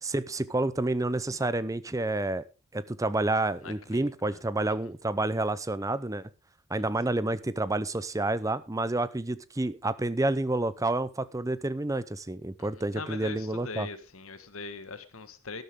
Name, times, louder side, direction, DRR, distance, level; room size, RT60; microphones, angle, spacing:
voice 1, 0.0-2.4 2.7-6.3 6.7-13.9, right 2 dB, 15° right, 0.6 m, -29 dB
voice 2, 3.6-4.4 4.8-4.9 6.8-6.9 12.6-15.6, left 4 dB, 75° left, 1.5 m, -42 dB
12.5 x 12.0 x 3.6 m
head